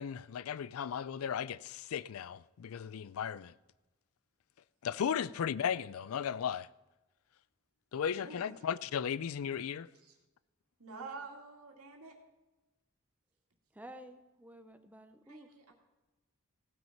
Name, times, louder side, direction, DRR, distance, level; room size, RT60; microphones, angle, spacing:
voice 1, 0.0-3.5 4.8-6.7 7.9-9.9, left 8 dB, 70° left, 0.4 m, -36 dB
voice 2, 8.2-8.6 10.0-10.1 10.8-12.2 15.3-15.7, right 4 dB, 80° right, 2.2 m, -48 dB
voice 3, 13.7-15.7, right 1 dB, 5° right, 0.6 m, -53 dB
17.0 x 6.2 x 5.8 m
head